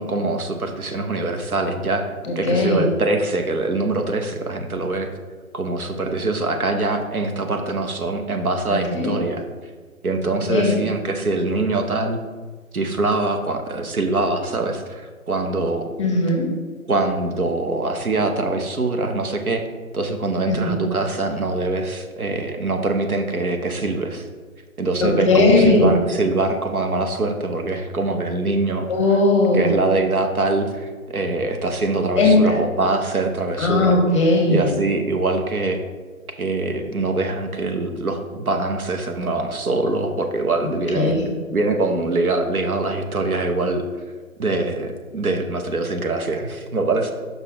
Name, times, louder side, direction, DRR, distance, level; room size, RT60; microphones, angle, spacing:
voice 1, 0.0-5.1 5.5-9.4 10.0-12.2 12.7-15.9 16.9-19.7 19.9-24.2 24.8-28.9 29.5-34.0 34.5-35.8 36.4-41.1 41.5-43.8 44.4-47.1, right 2 dB, 85° right, 5 dB, 1.0 m, -23 dB
voice 2, 2.3-2.9 8.7-9.1 10.5-10.8 16.0-16.5 20.5-20.8 25.0-25.9 28.9-29.7 32.2-32.4 33.6-34.7 40.9-41.2, left 2 dB, 20° left, 1 dB, 0.8 m, -18 dB
5.7 x 5.6 x 3.5 m, 1.4 s
figure-of-eight pair, 140°, 42 cm